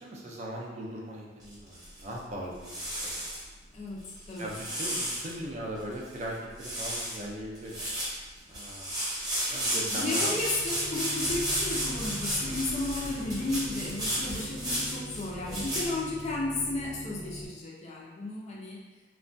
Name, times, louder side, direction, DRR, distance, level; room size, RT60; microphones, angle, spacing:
voice 1, 0.0-3.1 4.4-7.9 8.5-8.9 9.5-10.3 14.1-14.3 15.5-15.7, right 1 dB, 40° right, -2 dB, 0.4 m, -39 dB
sound 1, 1.4-2.2 2.6-3.4 4.1-5.3 5.8-5.9 6.1-6.3 6.6-7.2 7.6-15.9, right 1 dB, 20° right, 0.8 m, -33 dB
voice 2, 3.7-4.5 9.9-18.8, left 2 dB, 35° left, -3 dB, 0.4 m, -33 dB
sound 2, 10.2-17.5, right 1 dB, 85° left, 1.0 m, -43 dB
sound 3, 11.2-15.5, equal, 80° right, 0.6 m, -46 dB
2.3 x 2.1 x 2.5 m, 1.2 s
head